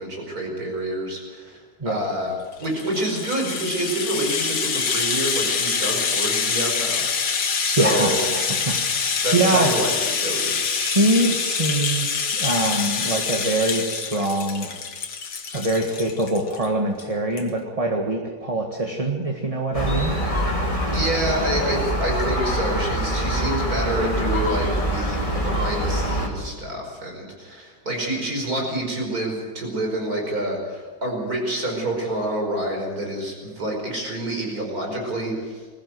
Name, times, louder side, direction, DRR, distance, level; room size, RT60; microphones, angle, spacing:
voice 1, 0.0-8.3 9.2-10.7 20.9-35.6, right 1 dB, 50° right, 1 dB, 5.6 m, -28 dB
Rattle (instrument), 2.5-16.7 17.0-17.1 17.4-17.5, left 5 dB, 70° left, 2.2 m, -25 dB
voice 2, 7.8-9.7 10.7-14.7 15.5-20.2, right 2 dB, 20° right, 1 dB, 1.7 m, -24 dB
Gull seagull, 19.7-26.3, equal, 15° left, 3.1 m, -24 dB
21.5 x 15.5 x 8.0 m, 1.4 s
omnidirectional pair, 2.0 m